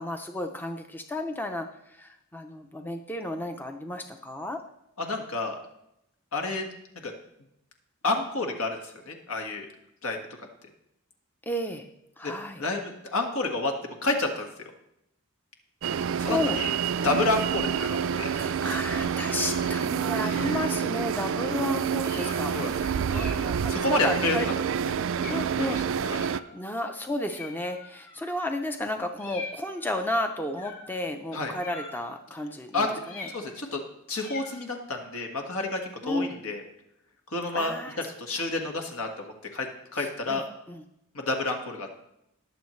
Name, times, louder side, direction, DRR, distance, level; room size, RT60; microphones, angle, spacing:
voice 1, 0.0-4.6 11.5-11.8 12.2-12.6 16.2-16.6 18.2-24.5 25.3-25.8 26.1-33.3 36.0-36.3 37.5-38.0 40.0-40.4 40.7-40.8, left 1 dB, 10° left, 5 dB, 0.5 m, -33 dB
voice 2, 5.0-5.6 6.3-6.7 7.0-7.1 8.0-9.7 10.0-10.5 12.2-12.3 12.6-13.7 14.0-14.7 16.2-16.7 17.0-18.3 22.5-22.9 23.7-24.5 25.5-25.7 26.1-26.2 31.3-31.5 32.7-33.0 33.3-33.8 34.1-36.6 37.3-40.4 41.1-41.9, left 2 dB, 75° left, 3 dB, 1.7 m, -30 dB
sound 1, 15.8-26.4, right 7 dB, 60° right, 0.3 m, -28 dB
sound 2, 18.7-19.7 20.2-20.7 21.4-21.6 22.0-22.5 23.1-23.5 24.2-24.6 25.1-25.5 26.1-26.6 27.2-28.6 29.2-29.9 30.6-31.0 31.6-32.2 33.0-33.7 34.1-34.6, left 3 dB, 40° left, 3.5 m, -44 dB
21.0 x 7.2 x 3.2 m, 0.83 s
head